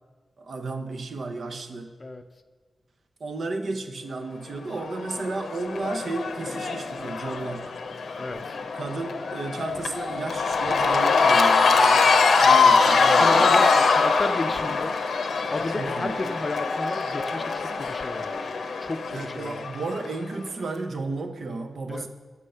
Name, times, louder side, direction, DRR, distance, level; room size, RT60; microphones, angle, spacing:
voice 1, 0.4-1.9 3.2-7.7 8.7-12.1 12.4-13.6 15.7-16.5 19.1-22.1, right 3 dB, 60° right, 6 dB, 0.7 m, -33 dB
Cheering / Crowd, 4.8-20.1, left 4 dB, 85° left, 0.7 m, -23 dB
voice 2, 8.2-8.6 13.2-14.9 15.5-19.6 21.9-22.1, left 2 dB, 35° left, 8 dB, 0.5 m, -32 dB
9.8 x 6.8 x 5.6 m, 1.4 s
wide cardioid pair, 115°, 0 cm